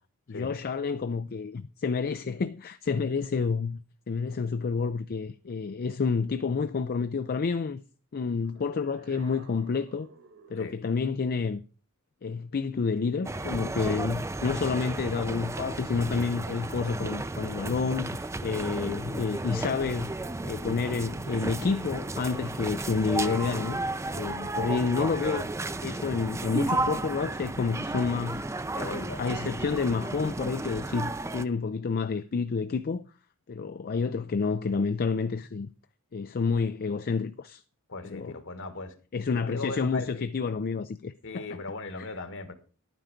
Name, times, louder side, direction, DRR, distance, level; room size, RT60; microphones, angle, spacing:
voice 1, 0.3-3.8 4.1-7.8 8.1-10.1 10.5-11.6 12.2-20.1 20.4-23.8 24.1-25.5 25.8-28.4 28.9-33.0 33.5-35.7 36.1-37.6 38.0-38.4 39.1-41.6 42.0-42.1, left 5 dB, 45° left, 0.4 m, -29 dB
sound 1, 8.4-10.7, right 4 dB, 65° right, 2.2 m, -53 dB
sound 2, 13.2-31.4, right 2 dB, 15° right, 0.5 m, -33 dB
voice 2, 28.7-29.2 37.9-38.9 39.5-40.3 41.2-42.5, left 2 dB, 60° left, 1.6 m, -38 dB
11.0 x 9.2 x 5.1 m
head